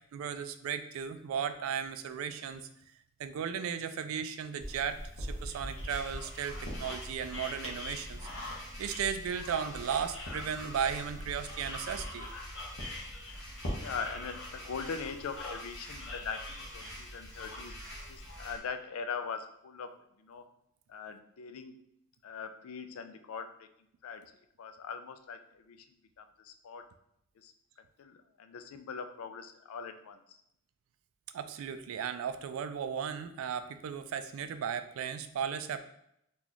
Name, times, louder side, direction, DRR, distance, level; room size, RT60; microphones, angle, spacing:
voice 1, 0.0-2.7 3.2-8.3 8.8-12.3 31.3-35.8, right 7 dB, 70° right, 11 dB, 0.3 m, -36 dB
sound 1, 4.6-18.5, left 1 dB, 65° left, 0.9 m, -42 dB
sound 2, 5.9-18.6, equal, 5° left, 1.1 m, -50 dB
voice 2, 13.8-17.7 18.1-19.9 20.2-20.5 20.9-21.8 22.2-23.7 24.0-25.9 26.2-26.9 27.4-27.5 28.0-30.4, left 5 dB, 80° left, 9 dB, 0.4 m, -41 dB
2.9 x 2.3 x 3.9 m, 0.77 s
head